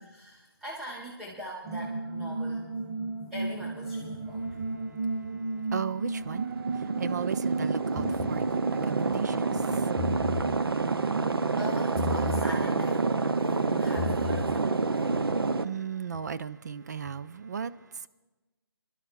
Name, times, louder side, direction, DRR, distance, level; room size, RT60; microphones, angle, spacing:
voice 1, 0.0-2.6 3.3-4.6 11.6-13.0 13.6-14.7, equal, 5° right, 0.9 m, -41 dB
sound 1, 1.6-14.2, right 3 dB, 30° right, 1.0 m, -35 dB
voice 2, 5.7-10.1 15.6-18.1, right 7 dB, 45° right, 0.5 m, -36 dB
sound 2, 6.2-15.6, right 4 dB, 75° right, 0.7 m, -28 dB
sound 3, 8.0-8.4 9.8-10.5 11.9-12.5 13.8-14.5, left 5 dB, 20° left, 1.0 m, -33 dB
26.5 x 12.0 x 2.5 m
figure-of-eight pair, 150°, 13 cm